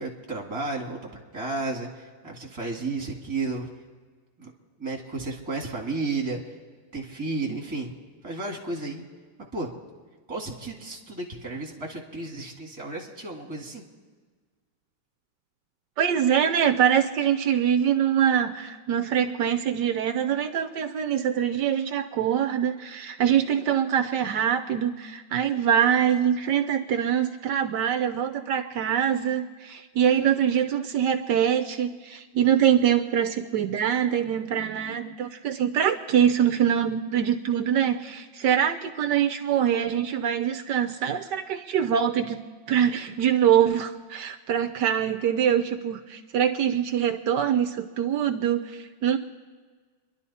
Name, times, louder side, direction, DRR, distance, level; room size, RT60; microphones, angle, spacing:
voice 1, 0.0-3.7 4.4-4.5 4.8-6.4 6.9-7.9 8.2-9.0 9.5-9.7 10.3-13.8, right 3 dB, 15° right, 0 dB, 2.0 m, -33 dB
voice 2, 16.0-49.2, right 9 dB, 70° right, 8 dB, 1.2 m, -24 dB
28.5 x 11.5 x 4.2 m, 1.5 s
omnidirectional pair, 2.1 m